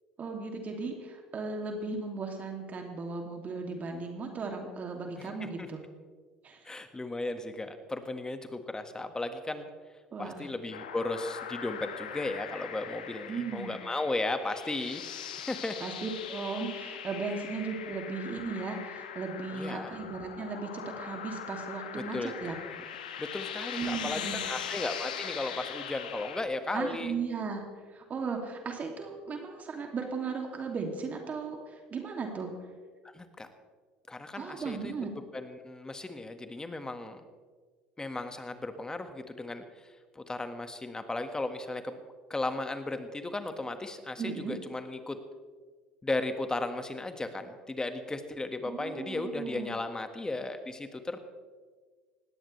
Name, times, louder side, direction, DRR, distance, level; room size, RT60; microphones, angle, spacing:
voice 1, 0.2-5.8 6.4-6.6 10.1-10.5 13.3-13.8 15.8-22.6 23.8-24.5 26.7-27.6 27.9-32.5 34.4-35.1 44.2-44.6 48.7-49.7, right 4 dB, 35° right, 2 dB, 2.7 m, -36 dB
voice 2, 5.2-5.7 6.6-9.7 10.2-15.0 15.5-15.8 19.5-19.9 22.0-22.8 23.2-27.2 33.0-33.5 34.1-34.9 35.3-37.2 38.0-42.0 42.3-45.2 46.0-51.2, left 2 dB, 15° left, 8 dB, 1.7 m, -35 dB
sound 1, 10.7-26.4, left 8 dB, 80° left, 1.3 m, -41 dB
19.5 x 17.0 x 3.4 m, 1.5 s
hypercardioid pair, 70°, 4 cm